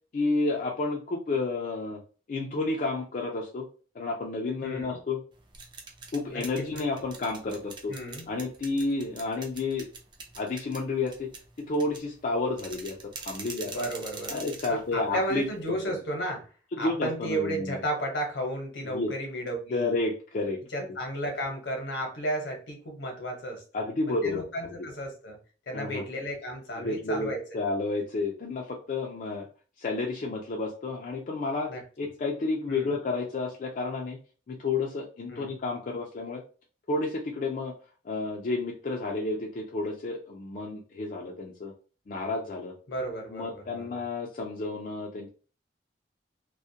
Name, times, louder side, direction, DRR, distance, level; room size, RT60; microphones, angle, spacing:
voice 1, 0.1-2.0 2.3-3.7 3.9-5.2 6.1-7.9 8.3-9.9 10.4-11.3 11.6-13.7 14.3-16.0 16.7-17.8 18.8-19.1 19.7-20.6 23.7-24.4 25.7-26.0 26.8-29.5 29.8-34.2 34.5-36.4 36.9-37.7 38.0-41.7 42.1-42.7 43.3-45.3, left 3 dB, 45° left, -1 dB, 0.4 m, -31 dB
voice 2, 4.6-5.0 6.3-6.8 7.9-8.3 13.7-14.4 14.7-16.5 16.8-19.9 20.7-23.6 24.2-25.4 25.7-27.4 31.7-31.8 32.7-33.0 35.3-35.5 42.9-44.0, right 1 dB, 75° left, 2 dB, 0.8 m, -33 dB
sound 1, 5.3-15.7, right 4 dB, 25° right, 0.4 m, -44 dB
2.3 x 2.1 x 2.7 m, 0.37 s
head